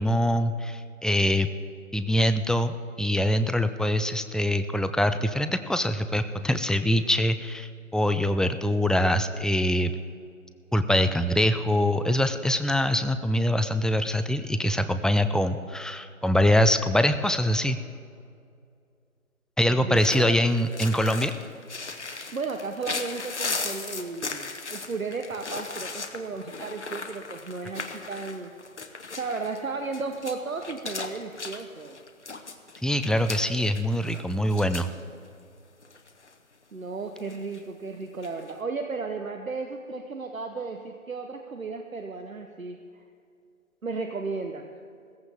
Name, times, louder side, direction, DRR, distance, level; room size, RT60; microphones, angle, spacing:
voice 1, 0.0-1.5 1.9-9.9 10.7-17.8 19.6-21.3 32.8-34.9, left 1 dB, ahead, 10 dB, 0.3 m, -24 dB
voice 2, 19.7-20.4 22.1-28.5 29.2-32.0 36.7-43.0 43.8-44.7, right 4 dB, 70° right, 5 dB, 1.0 m, -34 dB
sound 1, 20.0-35.0 35.3-35.4 35.8-36.3 37.2-37.6 38.1-38.5, left 4 dB, 55° left, 1.0 m, -37 dB
16.5 x 14.5 x 3.5 m, 2.3 s
figure-of-eight pair, 170°, 43 cm